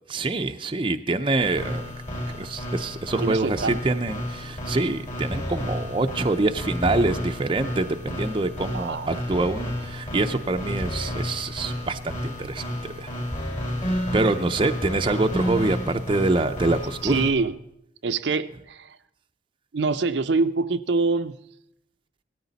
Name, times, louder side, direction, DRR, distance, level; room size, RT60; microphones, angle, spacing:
voice 1, 0.1-1.9 2.3-13.1 13.9-17.1, right 2 dB, 25° right, 7 dB, 0.5 m, -25 dB
sound 1, 1.4-17.3, equal, 40° left, 3.7 m, -31 dB
voice 2, 3.2-4.0 4.8-5.0 8.7-9.1 17.0-17.6 18.0-19.0 19.7-21.4, right 4 dB, 70° right, 10 dB, 0.6 m, -25 dB
17.5 x 14.0 x 4.1 m, 0.79 s
head